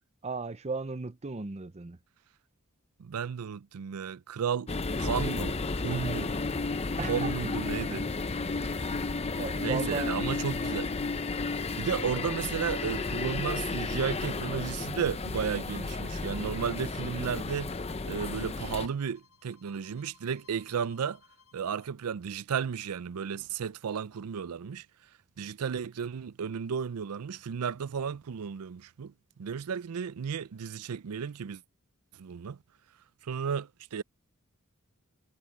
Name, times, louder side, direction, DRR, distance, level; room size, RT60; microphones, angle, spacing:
voice 1, 0.2-2.0 7.0-7.3 9.3-10.1, right 3 dB, 30° right, 0.6 m, -35 dB
voice 2, 3.0-4.7 5.0-5.6 5.8-6.3 7.1-8.1 9.6-10.9 11.8-17.7 18.0-21.2 21.5-24.9 25.4-31.6 32.2-32.6 33.2-34.0, right 7 dB, 85° right, 0.5 m, -33 dB
sound 1, 4.7-18.9, left 3 dB, 30° left, 0.6 m, -33 dB
Bowed string instrument, 16.2-22.0, left 5 dB, 75° left, 6.8 m, -63 dB
head